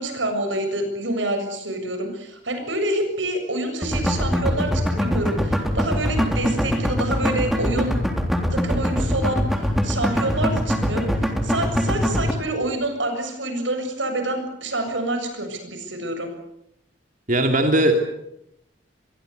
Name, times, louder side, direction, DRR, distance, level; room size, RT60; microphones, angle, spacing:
voice 1, 0.0-8.0 8.5-16.3, right 1 dB, 85° right, 7 dB, 7.3 m, -27 dB
sound 1, 3.8-12.3, equal, ahead, 3.6 m, -22 dB
voice 2, 17.3-18.0, right 1 dB, 45° right, 4 dB, 3.1 m, -18 dB
26.0 x 22.5 x 8.2 m, 0.79 s
head